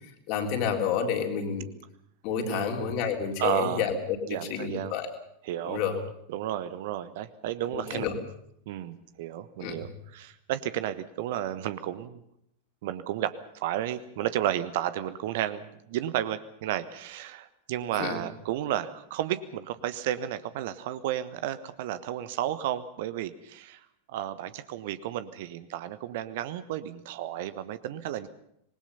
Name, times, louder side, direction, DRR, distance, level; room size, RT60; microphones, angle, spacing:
voice 1, 0.3-1.7 2.2-5.1 5.6-5.9 7.7-8.2 9.6-9.8 18.0-18.2, left 7 dB, 45° left, 3 dB, 3.6 m, -29 dB
voice 2, 2.4-2.8 3.4-3.8 4.3-5.0 5.4-8.1 8.7-12.2 12.8-23.8 24.1-28.3, right 12 dB, 50° right, 13 dB, 1.2 m, -32 dB
26.0 x 20.5 x 5.7 m, 0.73 s
figure-of-eight pair, 90°, 0 cm